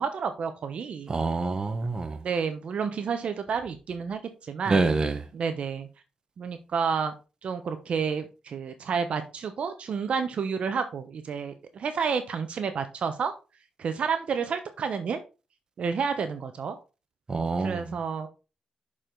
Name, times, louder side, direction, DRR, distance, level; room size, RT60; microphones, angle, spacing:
voice 1, 0.0-1.2 2.2-4.8 5.3-5.9 6.4-7.1 7.4-13.3 13.8-15.2 15.8-16.8 17.6-18.3, right 6 dB, 65° right, 0.9 m, -30 dB
voice 2, 1.1-2.2 4.7-5.2 17.3-17.9, right 3 dB, 35° right, 1.1 m, -26 dB
6.7 x 4.9 x 3.8 m
cardioid pair, 80°, 2 cm